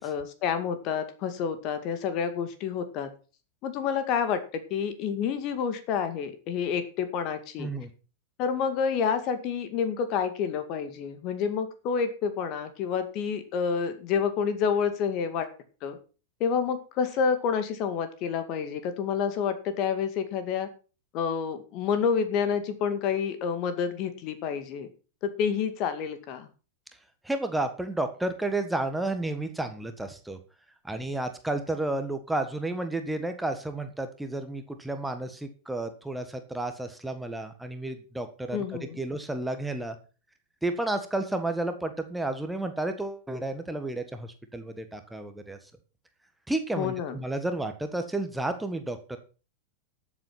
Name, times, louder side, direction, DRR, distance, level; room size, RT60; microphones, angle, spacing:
voice 1, 0.0-3.1 3.6-7.7 8.4-15.5 15.8-16.0 16.4-20.7 21.1-24.9 25.2-26.5 38.5-39.0 46.8-47.2, left 6 dB, 40° left, 9 dB, 2.2 m, -29 dB
voice 2, 7.6-7.9 27.2-30.4 30.8-38.6 39.0-39.9 40.6-45.6 46.5-49.2, right 2 dB, 5° right, 7 dB, 1.5 m, -31 dB
13.5 x 7.5 x 5.9 m, 0.35 s
figure-of-eight pair, 90°, 0 cm